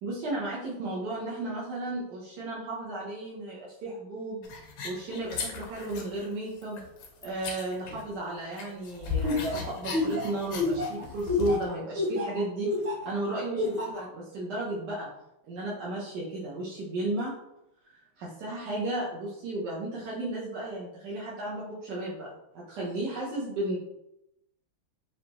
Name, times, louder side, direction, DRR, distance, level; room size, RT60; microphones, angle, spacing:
voice 1, 0.0-4.5 4.8-6.8 7.2-12.7 13.0-15.1 15.5-17.3 17.8-23.8, right 2 dB, 60° right, -7 dB, 1.3 m, -34 dB
sound 1, 4.4-6.2 6.6-8.3 8.5-11.7, left 6 dB, 85° left, 1.7 m, -37 dB
Laughter, 9.2-13.1 13.6-14.0, left 2 dB, 40° right, 1.0 m, -28 dB
5.3 x 2.7 x 2.9 m, 0.83 s
omnidirectional pair, 2.4 m